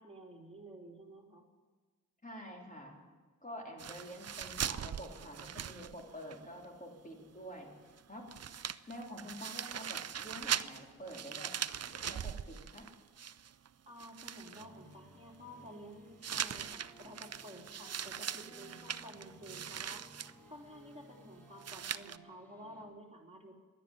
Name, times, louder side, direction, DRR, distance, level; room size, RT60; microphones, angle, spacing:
voice 1, 0.0-1.5 13.9-23.5, equal, 15° right, -1 dB, 3.2 m, -52 dB
voice 2, 2.2-3.0 3.4-7.7 8.1-8.3 8.9-11.5 11.9-12.9, equal, 25° left, 0 dB, 3.7 m, -48 dB
sound 1, 3.8-6.4 6.6-6.7 8.0-8.1 8.3-13.7 14.0-14.7 16.2-20.3 21.6-22.2, right 8 dB, 45° right, 0.5 m, -40 dB
sound 2, 14.5-22.9, right 1 dB, 5° left, 2.8 m, -58 dB
12.0 x 10.0 x 9.5 m, 1.4 s
cardioid pair, 55°, 35 cm